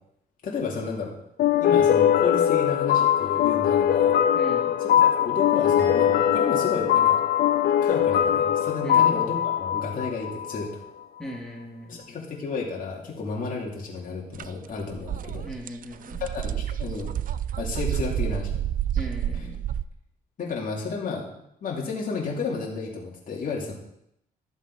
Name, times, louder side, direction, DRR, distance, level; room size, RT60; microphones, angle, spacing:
voice 1, 0.4-1.1 1.6-4.1 4.8-7.2 7.8-10.8 11.9-15.4 16.3-17.1 17.6-18.5 20.4-23.7, left 4 dB, 55° left, -3 dB, 2.8 m, -32 dB
sound 1, 1.4-10.7, left 10 dB, 75° left, 0.6 m, -21 dB
voice 2, 4.3-4.7 8.8-9.1 11.2-12.0 15.4-16.2 18.9-19.6, equal, 5° left, -2 dB, 3.4 m, -38 dB
Musical instrument, 5.8-9.2 9.4-9.9, equal, 75° right, 2.8 m, -43 dB
sound 2, 14.3-14.5 14.8-19.9, right 10 dB, 55° right, 0.5 m, -29 dB
13.0 x 7.4 x 4.8 m, 0.77 s
cardioid pair, 95°, 16 cm